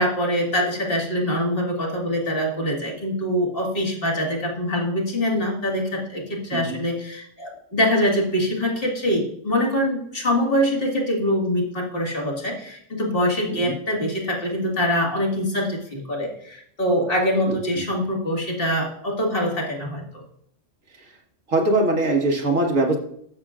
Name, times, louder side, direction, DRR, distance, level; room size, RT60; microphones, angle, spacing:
voice 1, 0.0-20.2, equal, 45° left, -2 dB, 2.2 m, -24 dB
voice 2, 17.5-17.8 21.0-21.1 21.5-23.0, right 2 dB, 85° right, 1 dB, 2.0 m, -22 dB
13.0 x 6.8 x 2.5 m, 0.67 s
omnidirectional pair, 1.3 m